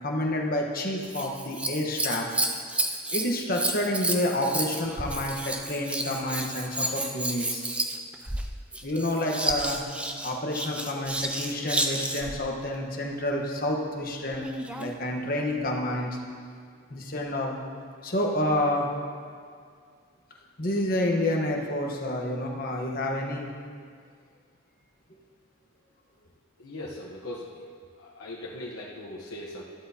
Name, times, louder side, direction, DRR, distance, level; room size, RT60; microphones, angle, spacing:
voice 1, 0.0-2.3 3.1-7.7 8.8-9.8 10.2-14.5 14.8-16.2 16.9-17.6 18.0-18.9 20.6-23.5, left 1 dB, 40° left, 0 dB, 1.2 m, -29 dB
Scissors, 1.0-12.4 14.3-15.0 15.7-15.8, right 1 dB, 5° right, 0.4 m, -31 dB
voice 2, 26.6-27.6 28.0-29.6, left 1 dB, 85° left, -5 dB, 1.1 m, -39 dB
13.0 x 11.5 x 2.8 m, 2.1 s
head